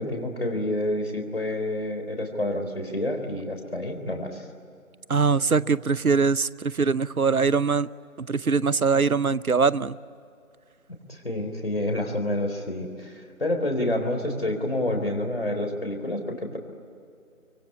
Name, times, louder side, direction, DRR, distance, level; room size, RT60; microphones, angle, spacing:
voice 1, 0.0-4.5 11.1-16.6, left 1 dB, 45° left, 4 dB, 4.0 m, -28 dB
voice 2, 5.1-7.9 8.2-10.0, right 5 dB, 85° right, 19 dB, 0.8 m, -22 dB
25.0 x 24.0 x 9.6 m, 2.4 s
figure-of-eight pair, 170°, 42 cm